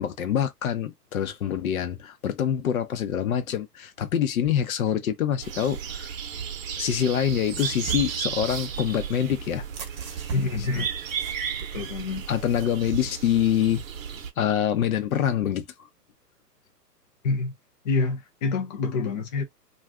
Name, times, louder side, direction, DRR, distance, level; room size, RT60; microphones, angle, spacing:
voice 1, 0.0-6.1 6.8-9.6 12.3-13.8 14.4-15.7, left 9 dB, 60° left, 0.8 m, -25 dB
sound 1, 5.4-14.3, right 7 dB, 55° right, 0.8 m, -34 dB
sound 2, 7.5-12.7, right 9 dB, 30° right, 0.9 m, -40 dB
voice 2, 10.3-10.9 11.6-12.3 17.2-17.5 17.8-19.4, left 4 dB, 30° left, 0.5 m, -27 dB
2.5 x 2.4 x 3.5 m
hypercardioid pair, 130°, 49 cm